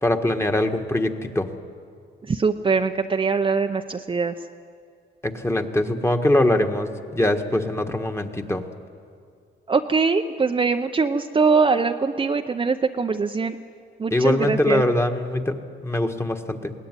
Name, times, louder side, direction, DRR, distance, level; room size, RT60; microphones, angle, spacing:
voice 1, 0.0-1.5 5.2-8.6 14.1-16.7, left 1 dB, 15° left, 5 dB, 1.6 m, -22 dB
voice 2, 2.3-4.3 9.7-13.6 14.0-14.8, right 4 dB, 25° right, 6 dB, 0.7 m, -22 dB
21.5 x 17.5 x 9.7 m, 2.2 s
cardioid pair, 90°, 20 cm